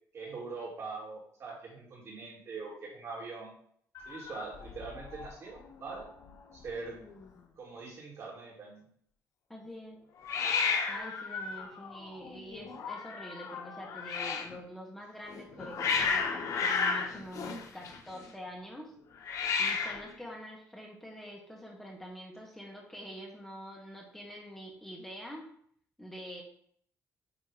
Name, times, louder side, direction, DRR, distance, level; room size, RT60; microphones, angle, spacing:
voice 1, 0.1-3.5 4.1-6.1 6.5-7.0 7.6-8.9, right 4 dB, 50° right, -2 dB, 2.8 m, -42 dB
Hiss, 3.9-5.3 5.6-6.0 6.3-6.4 6.6-7.2 10.2-14.5 15.3-18.2 19.2-20.1, left 5 dB, 65° left, 1.1 m, -33 dB
voice 2, 9.5-10.0 10.9-18.9 19.6-25.5 26.0-26.4, equal, 5° left, -2 dB, 1.7 m, -46 dB
9.1 x 3.4 x 5.0 m, 0.63 s
cardioid pair, 125°, 6 cm